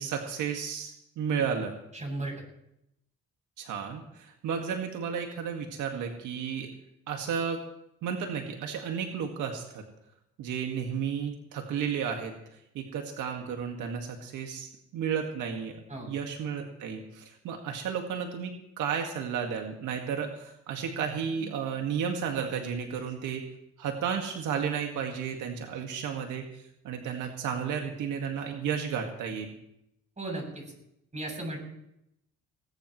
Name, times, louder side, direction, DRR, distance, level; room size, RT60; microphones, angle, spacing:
voice 1, 0.0-1.7 3.6-6.7 7.1-7.6 8.0-9.8 10.4-12.3 12.7-23.4 23.8-26.5 26.8-29.5, right 7 dB, 90° right, 3 dB, 1.9 m, -33 dB
voice 2, 1.9-2.3 15.9-16.1 30.2-30.6 31.1-31.6, right 2 dB, 25° right, 1 dB, 7.9 m, -35 dB
20.5 x 18.5 x 3.2 m, 0.80 s
cardioid pair, 90°, 30 cm